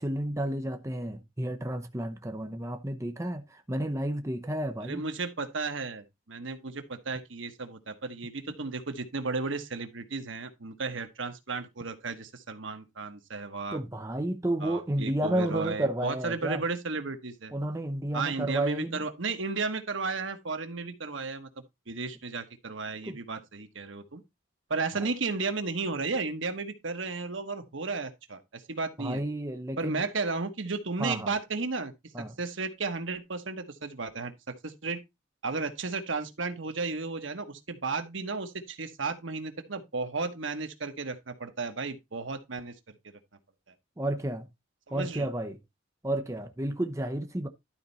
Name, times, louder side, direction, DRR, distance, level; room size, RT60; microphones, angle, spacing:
voice 1, 0.0-5.0 13.7-16.6 17.5-19.0 23.1-23.2 25.0-25.1 29.0-30.0 31.0-31.3 32.1-32.4 44.0-44.5 44.9-45.6 46.0-47.5, right 1 dB, 15° right, 0.7 m, -31 dB
voice 2, 4.8-13.8 14.6-17.5 18.1-24.2 24.7-29.2 29.8-31.9 32.4-35.0 35.4-42.7 43.0-43.1 44.9-45.3, right 4 dB, 80° right, 1.3 m, -34 dB
12.0 x 4.4 x 4.1 m
head